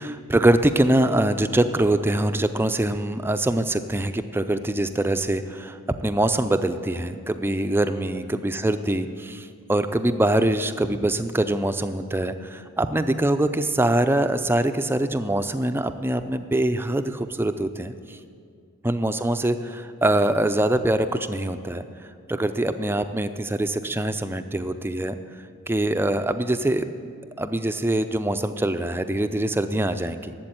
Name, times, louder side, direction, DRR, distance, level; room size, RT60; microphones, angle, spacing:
voice 1, 0.0-18.2 18.8-21.8 22.3-25.2 25.7-26.9 27.4-30.3, right 1 dB, 10° right, 10 dB, 0.4 m, -23 dB
12.0 x 7.8 x 8.9 m, 2.3 s
head